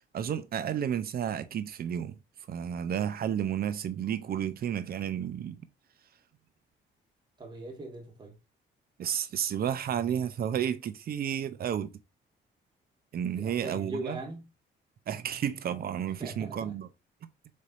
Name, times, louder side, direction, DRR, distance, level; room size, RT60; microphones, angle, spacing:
voice 1, 0.1-2.2 2.5-5.6 9.0-11.9 13.1-14.2 15.1-16.9, right 9 dB, 50° right, 0.5 m, -32 dB
voice 2, 7.4-8.3 13.4-14.5 16.2-16.8, right 2 dB, 20° right, 1.6 m, -40 dB
4.2 x 3.3 x 2.5 m
cardioid pair, 90°, 20 cm